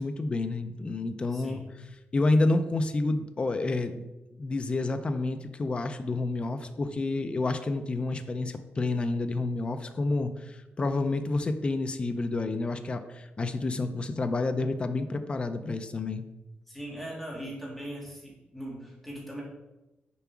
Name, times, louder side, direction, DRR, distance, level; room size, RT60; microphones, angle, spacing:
voice 1, 0.0-1.9 2.1-4.1 4.4-16.2, left 2 dB, 25° left, 8 dB, 0.5 m, -29 dB
voice 2, 1.3-1.7 16.7-19.4, right 1 dB, 5° left, -4 dB, 2.3 m, -40 dB
6.9 x 4.7 x 6.0 m, 1.0 s
wide cardioid pair, 155°, 4 cm